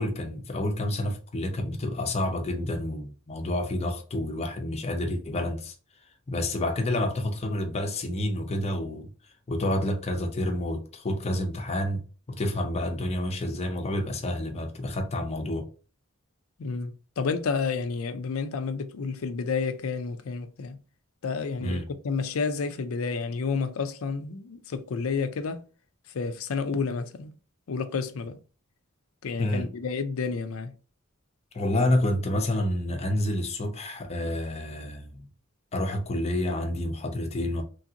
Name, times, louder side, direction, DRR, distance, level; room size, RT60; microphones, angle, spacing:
voice 1, 0.0-5.7 6.3-9.1 9.5-12.0 12.3-15.7 21.6-21.9 29.4-29.7 31.5-35.3 35.7-37.6, left 1 dB, 30° left, 0.6 m, -29 dB
voice 2, 16.6-20.8 21.2-25.6 26.1-27.3 27.7-28.4 29.2-30.7, left 5 dB, 80° left, 0.5 m, -30 dB
3.2 x 2.6 x 2.7 m
head